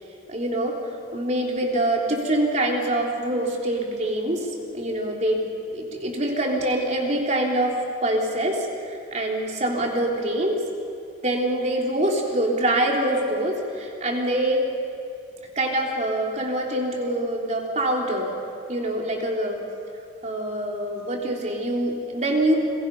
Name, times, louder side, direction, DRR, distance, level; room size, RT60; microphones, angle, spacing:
voice 1, 0.3-0.7 1.1-4.5 4.7-5.4 5.7-7.7 8.0-10.6 11.2-14.6 15.5-18.3 18.7-19.6 20.2-22.6, right 1 dB, 35° right, 0 dB, 3.3 m, -25 dB
29.0 x 22.5 x 5.4 m, 2.5 s
head